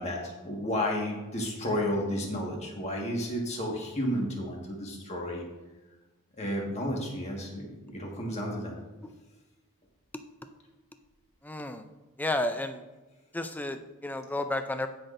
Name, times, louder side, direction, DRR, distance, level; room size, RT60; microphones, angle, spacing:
voice 1, 0.0-5.4 6.4-8.8, equal, 30° left, -1 dB, 1.7 m, -32 dB
voice 2, 11.4-11.8 12.2-12.8 13.3-14.9, left 1 dB, 10° left, 8 dB, 0.4 m, -32 dB
16.5 x 5.9 x 2.6 m, 1.1 s
head